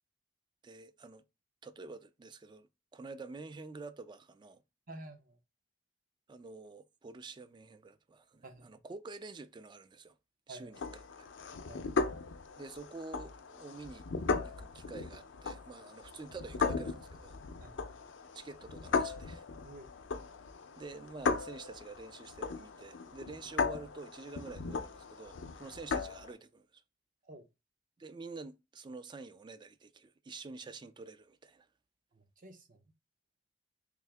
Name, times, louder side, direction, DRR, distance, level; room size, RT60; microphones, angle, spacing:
voice 1, 0.6-1.2 1.6-4.6 6.3-10.2 10.5-10.8 11.2-11.3 12.6-14.1 14.4-17.4 18.3-19.4 20.8-26.8 28.0-31.7, right 3 dB, 25° right, 0.3 m, -48 dB
voice 2, 4.9-5.4 8.4-8.7 10.5-10.8 11.7-11.9 17.6-18.0 19.6-19.9 27.3-27.5 32.1-32.8, right 1 dB, 45° right, 0.7 m, -50 dB
sound 1, 10.7-26.3, left 4 dB, 75° left, 0.5 m, -37 dB
3.6 x 2.8 x 3.3 m
head